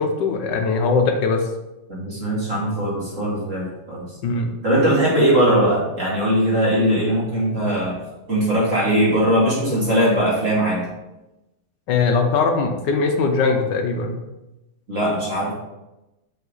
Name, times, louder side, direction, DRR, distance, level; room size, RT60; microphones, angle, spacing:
voice 1, 0.0-1.5 4.2-4.6 11.9-14.2, left 4 dB, 65° left, 4 dB, 1.3 m, -20 dB
voice 2, 1.9-4.1 4.6-8.0 8.3-10.8 14.9-15.5, right 1 dB, 35° right, -6 dB, 2.6 m, -20 dB
6.8 x 5.4 x 4.0 m, 0.98 s
omnidirectional pair, 2.4 m